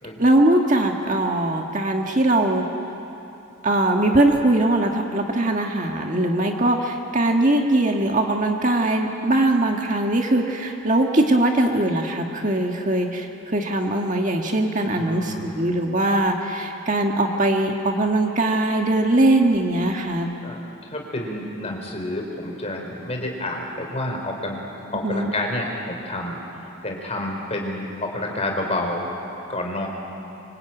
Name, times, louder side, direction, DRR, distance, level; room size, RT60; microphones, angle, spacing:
voice 1, 0.2-2.6 3.6-20.3 25.0-25.3, right 1 dB, 35° right, 2 dB, 1.7 m, -21 dB
voice 2, 14.9-15.7 20.4-24.6 24.9-26.4 26.8-29.1 29.5-29.9, left 1 dB, 30° left, 1 dB, 4.0 m, -29 dB
25.5 x 25.0 x 9.0 m, 2.9 s
head